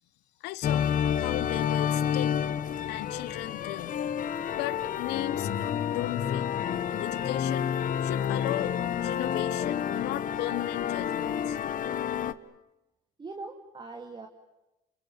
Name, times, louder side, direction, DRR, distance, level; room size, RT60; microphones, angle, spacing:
voice 1, 0.4-2.4 2.8-4.0 4.6-5.5 5.9-6.5 6.9-7.7 8.0-11.6, left 17 dB, 90° left, 1.0 m, -36 dB
sound 1, 0.6-12.3, left 9 dB, 50° left, 1.2 m, -29 dB
voice 2, 13.2-14.3, right 3 dB, 25° right, 2.5 m, -41 dB
29.5 x 26.5 x 7.0 m
cardioid pair, 110°, 17 cm